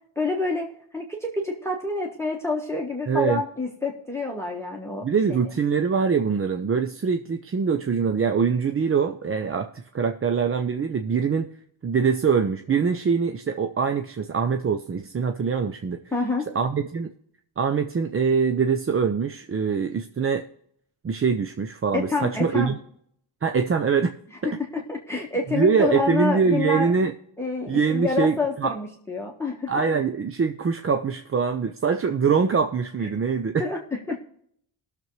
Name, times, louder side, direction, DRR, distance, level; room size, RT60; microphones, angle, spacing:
voice 1, 0.2-0.6 0.9-5.0 5.3-5.4 16.1-16.4 21.9-22.7 24.7-26.9 27.4-29.7 33.6-34.2, left 3 dB, 5° left, 0 dB, 1.3 m, -27 dB
voice 2, 3.1-3.4 5.0-11.5 11.8-16.0 16.5-17.1 17.6-20.5 21.0-22.8 23.4-24.1 24.4-24.5 25.5-27.1 27.7-28.7 29.7-33.7, right 6 dB, 30° right, 7 dB, 0.5 m, -23 dB
19.0 x 6.8 x 3.1 m, 0.68 s
wide cardioid pair, 130°, 48 cm